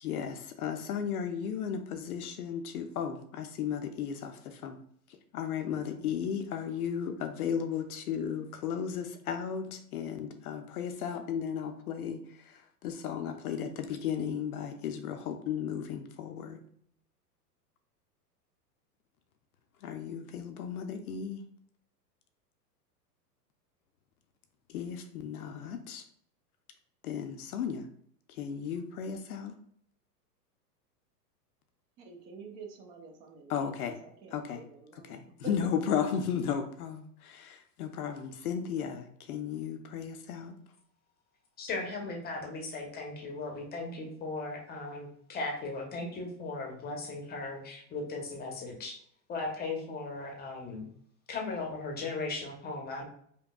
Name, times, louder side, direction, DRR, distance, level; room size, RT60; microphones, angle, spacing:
voice 1, 0.0-4.8 5.3-16.6 19.8-21.4 24.7-26.0 27.0-27.9 28.3-29.6 33.5-34.0 34.3-34.6 34.9-40.6, left 7 dB, 65° left, 6 dB, 0.6 m, -35 dB
voice 2, 32.0-33.8 34.0-35.2, right 5 dB, 35° right, 2 dB, 0.8 m, -49 dB
voice 3, 41.6-49.0 49.3-50.9 51.3-53.0, left 3 dB, 20° left, 1 dB, 0.8 m, -37 dB
5.1 x 2.3 x 2.3 m, 0.64 s
hypercardioid pair, 105°, 48 cm